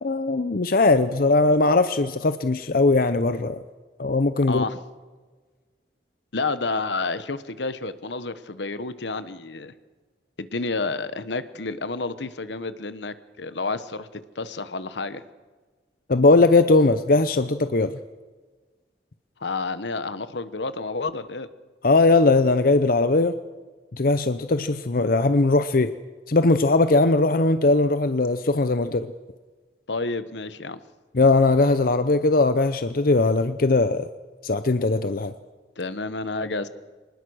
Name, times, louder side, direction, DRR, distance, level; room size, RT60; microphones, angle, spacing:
voice 1, 0.0-3.6 4.0-4.6 16.1-17.9 21.8-23.4 23.9-25.9 26.3-29.1 31.1-34.1 34.4-35.3, left 3 dB, 50° left, 11 dB, 0.7 m, -19 dB
voice 2, 4.5-4.8 6.3-9.7 10.4-15.2 19.4-21.5 29.9-30.8 35.8-36.7, left 3 dB, 75° left, 13 dB, 1.1 m, -30 dB
24.5 x 20.0 x 6.4 m, 1.4 s
head